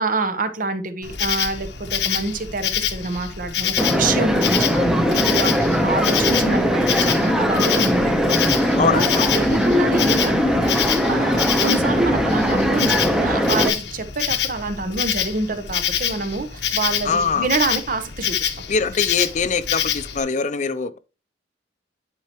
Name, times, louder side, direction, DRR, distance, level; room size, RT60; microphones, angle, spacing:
voice 1, 0.0-9.1 9.3-18.5, right 3 dB, 50° right, 1.0 m, -26 dB
Insect, 1.0-20.2, left 9 dB, 75° left, 0.9 m, -26 dB
sound 1, 3.8-13.7, equal, 5° right, 0.8 m, -20 dB
voice 2, 8.8-9.3 17.0-17.5 18.7-21.0, left 5 dB, 45° left, 0.5 m, -22 dB
10.5 x 4.6 x 3.0 m
head